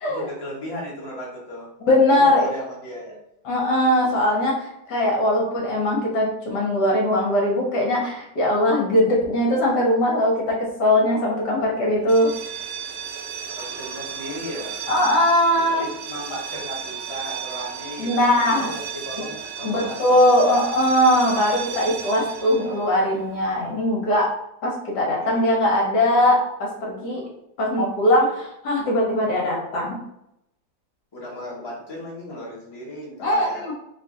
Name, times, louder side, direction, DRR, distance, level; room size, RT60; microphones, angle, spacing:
voice 1, 0.1-1.7 2.1-3.2 13.5-14.7 15.7-20.0 25.2-25.6 31.1-33.7, equal, 20° left, -5 dB, 0.8 m, -35 dB
voice 2, 1.8-2.5 3.4-12.3 14.9-15.8 18.0-18.7 19.6-24.3 24.6-27.2 27.6-30.0 33.2-33.7, left 1 dB, 65° left, -2 dB, 1.5 m, -20 dB
sound 1, 12.0-23.7, right 8 dB, 85° right, 0.6 m, -35 dB
3.9 x 2.7 x 3.6 m, 0.82 s
omnidirectional pair, 2.0 m